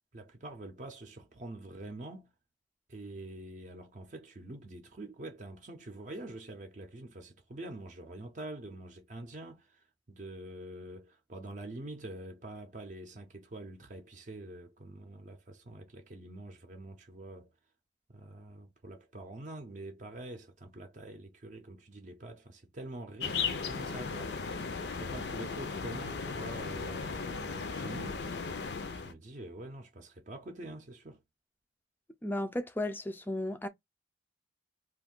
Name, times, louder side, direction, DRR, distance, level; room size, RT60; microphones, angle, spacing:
voice 1, 0.1-2.3 2.9-17.5 18.1-24.6 24.9-28.3 28.9-31.2, right 1 dB, 40° right, 0.5 m, -45 dB
sound 1, 23.2-29.1, left 5 dB, 65° left, 0.5 m, -36 dB
voice 2, 32.2-33.7, left 1 dB, 10° left, 0.3 m, -34 dB
2.6 x 2.4 x 3.7 m
head